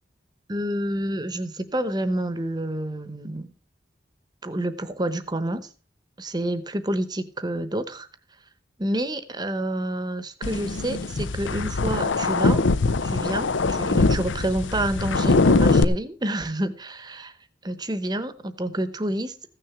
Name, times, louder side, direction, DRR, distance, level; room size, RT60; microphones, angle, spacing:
voice 1, 0.5-3.5 4.4-5.7 6.2-8.1 8.8-12.6 13.0-17.3 17.6-19.4, right 1 dB, 20° right, 0.9 m, -28 dB
sound 1, 10.4-15.8, left 3 dB, 90° left, 0.7 m, -22 dB
15.0 x 6.7 x 5.9 m
head